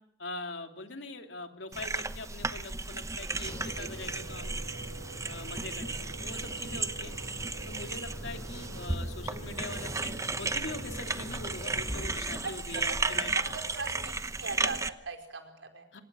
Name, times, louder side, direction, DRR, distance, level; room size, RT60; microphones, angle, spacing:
voice 1, 0.2-4.5 5.2-7.1 7.6-13.3 15.9-16.0, left 2 dB, 70° left, 5 dB, 3.1 m, -42 dB
sound 1, 1.7-14.9, right 3 dB, 15° right, 1.0 m, -34 dB
Engine, 3.2-14.1, right 1 dB, 20° left, 7.8 m, -44 dB
voice 2, 3.7-4.1 7.6-7.8 12.4-15.9, right 3 dB, 80° right, 5 dB, 4.9 m, -40 dB
27.0 x 25.5 x 6.3 m, 0.76 s
head